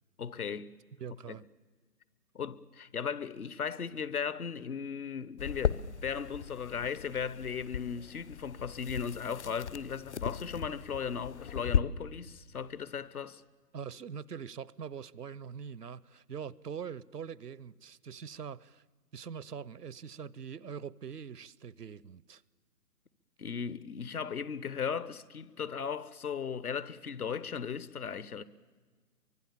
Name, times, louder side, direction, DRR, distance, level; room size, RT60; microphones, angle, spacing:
voice 1, 0.2-0.7 1.3-1.4 2.3-13.4 23.4-28.4, left 6 dB, 65° left, 1.1 m, -37 dB
voice 2, 1.0-1.5 13.7-18.8 19.1-22.4, right 7 dB, 75° right, 0.8 m, -43 dB
sound 1, 5.4-11.8, left 8 dB, 45° left, 0.7 m, -36 dB
29.5 x 24.0 x 7.2 m
figure-of-eight pair, 140°, 48 cm